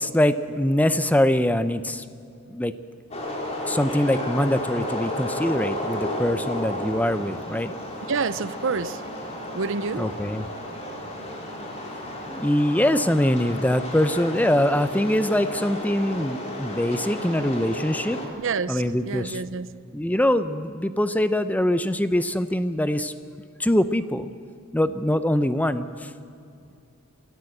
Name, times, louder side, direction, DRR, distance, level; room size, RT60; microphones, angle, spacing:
voice 1, 0.0-2.0 2.5-2.7 3.7-7.7 10.0-10.5 12.3-18.2 18.7-19.4 19.9-23.1 23.6-24.3 24.7-26.1, left 1 dB, 5° left, 11 dB, 0.6 m, -23 dB
sound 1, 3.1-18.3, left 1 dB, 30° left, 3.0 m, -33 dB
voice 2, 8.1-9.0 9.5-10.1 18.4-19.7, right 4 dB, 60° right, 15 dB, 0.6 m, -28 dB
24.5 x 14.0 x 7.9 m, 2.5 s
head